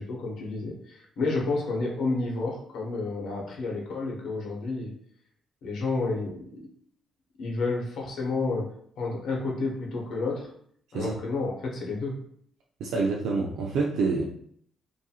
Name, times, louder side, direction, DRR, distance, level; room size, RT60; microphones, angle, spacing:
voice 1, 0.0-4.9 5.6-6.7 7.4-10.5 10.9-12.2, left 3 dB, 70° left, -2 dB, 0.8 m, -30 dB
voice 2, 12.8-14.2, right 4 dB, 85° right, -2 dB, 0.4 m, -27 dB
2.7 x 2.5 x 2.3 m, 0.64 s
cardioid pair, 90°, 0 cm